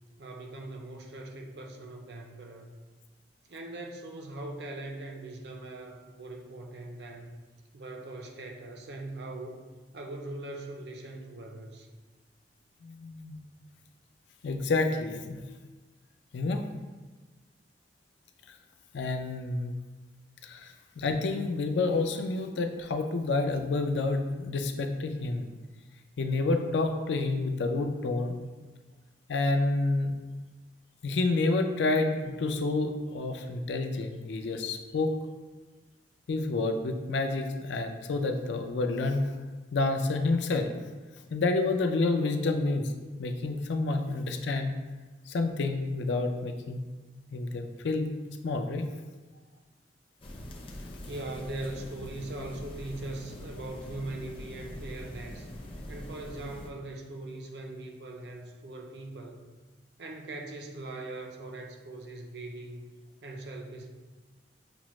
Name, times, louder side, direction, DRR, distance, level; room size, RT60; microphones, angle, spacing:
voice 1, 0.2-2.8 3.5-7.4 7.7-9.6 9.9-11.9 51.0-55.5 55.9-59.4 60.0-62.9 63.2-63.9, right 2 dB, 65° right, 2 dB, 0.5 m, -41 dB
voice 2, 12.8-13.4 14.4-15.4 16.3-16.6 18.5-18.6 18.9-19.7 20.4-25.5 26.2-28.3 29.3-30.1 31.0-35.1 36.3-39.2 39.7-40.7 41.3-42.9 43.2-44.8 45.3-46.8 47.3-48.1 48.4-48.8, left 3 dB, 85° left, 6 dB, 0.4 m, -29 dB
sound 1, 50.2-56.7, left 1 dB, 30° left, 0.5 m, -43 dB
6.0 x 2.0 x 3.0 m, 1.3 s
head